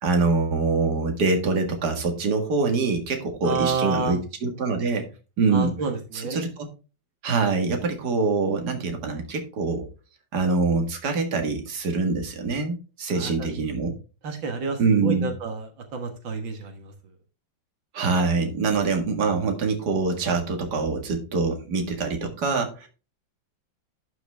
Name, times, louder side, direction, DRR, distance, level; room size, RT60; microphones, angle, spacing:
voice 1, 0.0-5.1 5.4-5.7 6.1-6.7 7.2-9.8 10.3-13.9 14.8-15.3 17.9-22.9, right 4 dB, 60° right, 4 dB, 2.4 m, -24 dB
voice 2, 3.4-4.2 5.5-6.4 13.1-13.5 14.2-16.9, right 4 dB, 85° right, 5 dB, 2.3 m, -29 dB
12.0 x 6.1 x 3.5 m, 0.33 s
omnidirectional pair, 2.0 m